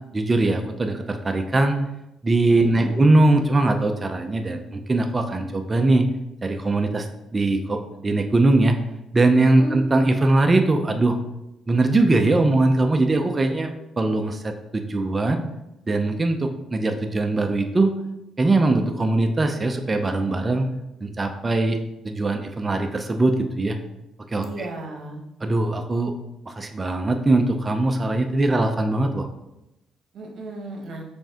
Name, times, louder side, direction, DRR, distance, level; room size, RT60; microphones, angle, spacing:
voice 1, 0.1-1.8 2.2-6.1 6.4-7.1 7.3-8.8 9.1-11.2 11.7-13.7 14.0-15.4 15.9-17.9 18.4-20.7 21.0-21.8 22.0-23.8 24.3-24.7 25.4-26.1 26.5-29.3, right 2 dB, 25° right, 5 dB, 0.5 m, -21 dB
voice 2, 2.5-2.9 9.4-9.8 24.4-25.2 30.1-31.0, right 1 dB, 65° right, 1 dB, 1.0 m, -34 dB
5.2 x 3.4 x 2.8 m, 0.90 s
cardioid pair, 90°, 0 cm